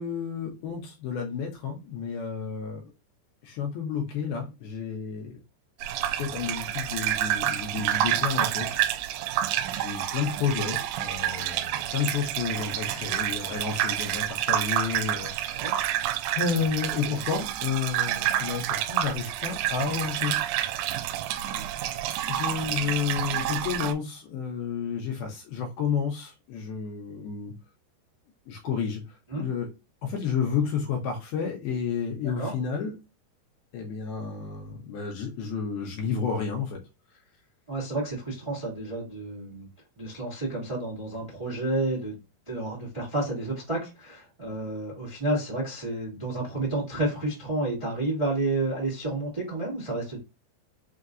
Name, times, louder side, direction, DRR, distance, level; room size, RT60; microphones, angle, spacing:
voice 1, 0.0-2.9 3.4-5.4 6.0-8.8 9.7-15.8 16.4-20.4 22.3-27.5 28.5-29.0 29.4-29.7 30.0-33.0 33.7-36.8, left 6 dB, 75° left, 1 dB, 2.4 m, -31 dB
sound 1, 5.8-23.9, right 12 dB, 85° right, 2.8 m, -29 dB
voice 2, 37.7-39.7 40.0-42.2 42.5-50.2, right 2 dB, 25° right, -5 dB, 0.6 m, -30 dB
6.5 x 2.6 x 2.3 m, 0.27 s
omnidirectional pair, 5.2 m